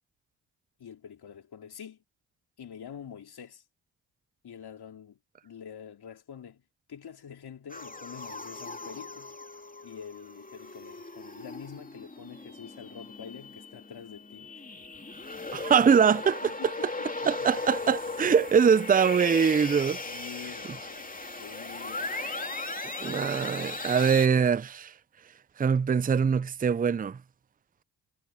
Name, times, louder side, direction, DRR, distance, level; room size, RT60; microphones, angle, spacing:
voice 1, 0.8-2.0 2.6-3.6 4.4-6.6 6.9-9.4 9.8-14.5 16.4-17.6 20.0-22.3, left 8 dB, 65° left, 4.1 m, -46 dB
sound 1, 7.7-24.3, left 3 dB, 20° left, 2.8 m, -38 dB
voice 2, 15.5-16.4 17.3-20.0 23.0-24.9 25.6-27.2, right 6 dB, 20° right, 0.5 m, -23 dB
hypercardioid pair, 45°, 42 cm